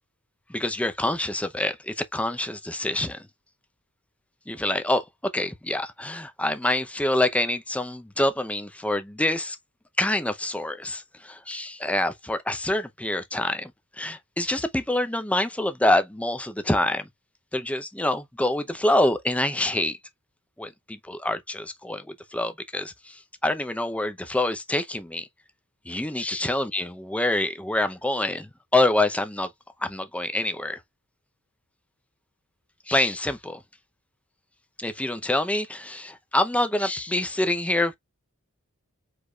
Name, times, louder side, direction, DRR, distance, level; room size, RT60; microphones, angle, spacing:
voice 1, 0.5-3.3 4.5-5.0 5.3-9.6 10.0-13.7 14.0-17.1 17.5-20.0 20.6-22.1 22.3-25.3 25.9-29.5 29.8-30.8 32.9-33.6 34.8-37.9, left 1 dB, 5° left, 0.6 m, -26 dB
5.0 x 4.0 x 2.3 m
head